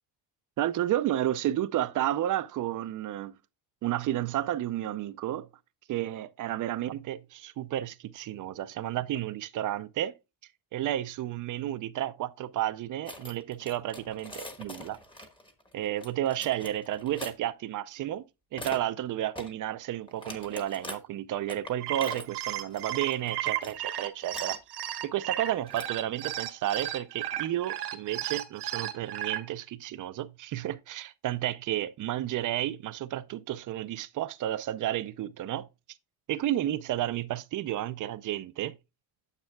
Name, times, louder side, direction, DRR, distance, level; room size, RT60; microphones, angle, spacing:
voice 1, 0.6-3.3 3.8-5.5 5.9-10.1 10.7-15.0 15.7-18.2 18.5-24.6 25.0-35.7 36.3-38.8, right 13 dB, 50° right, 0.5 m, -32 dB
sound 1, 13.0-17.3 18.5-18.8 19.3-19.5 20.1-20.9 21.5-23.8 24.1-24.6 25.4-26.1, left 1 dB, 10° left, 1.2 m, -43 dB
sound 2, 21.6-29.4, right 13 dB, 75° right, 1.2 m, -34 dB
9.0 x 8.1 x 2.2 m
cardioid pair, 180°, 40 cm